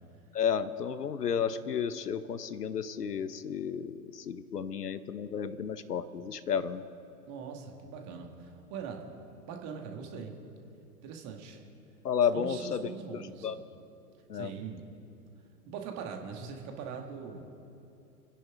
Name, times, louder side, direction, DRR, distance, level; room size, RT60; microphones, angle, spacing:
voice 1, 0.3-6.8 12.0-12.8 13.4-13.6 14.3-14.5, left 7 dB, 80° left, 13 dB, 0.9 m, -32 dB
voice 2, 7.3-9.1 9.4-10.3 11.0-11.6 12.3-13.5 14.3-14.9 15.7-17.5, right 6 dB, 35° right, 3 dB, 2.1 m, -41 dB
29.5 x 10.5 x 3.7 m, 2.7 s
figure-of-eight pair, 100°, 47 cm